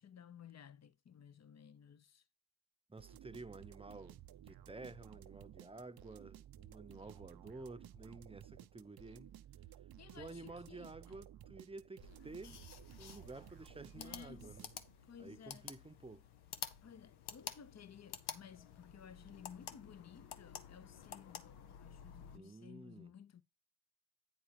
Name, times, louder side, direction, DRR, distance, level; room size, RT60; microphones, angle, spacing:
voice 1, 0.0-2.2 10.0-10.9 13.9-14.6 15.0-15.7 16.8-23.4, left 8 dB, 45° left, 0.8 m, -56 dB
voice 2, 2.9-9.3 10.1-12.6 13.0-14.7 15.2-16.3 22.3-23.1, right 3 dB, 15° right, 0.8 m, -52 dB
sound 1, 3.0-15.2, right 11 dB, 70° right, 0.6 m, -56 dB
sound 2, 12.0-22.4, left 9 dB, 85° left, 0.8 m, -51 dB
8.7 x 4.3 x 5.1 m
supercardioid pair, 45°, 38 cm